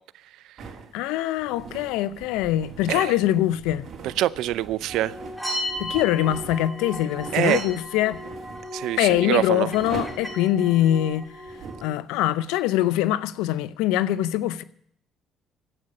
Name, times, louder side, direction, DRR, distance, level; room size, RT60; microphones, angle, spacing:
sound 1, 0.6-11.9, right 5 dB, 55° right, 3.2 m, -42 dB
voice 1, 0.9-3.9 5.8-8.2 9.0-11.3 11.8-14.6, left 13 dB, 85° left, 0.6 m, -23 dB
voice 2, 4.0-5.1 7.3-7.6 8.7-9.7, right 14 dB, 75° right, 0.5 m, -25 dB
sound 2, 4.9-11.9, equal, 5° left, 6.3 m, -36 dB
12.0 x 8.2 x 9.9 m
supercardioid pair, 70°, 0 cm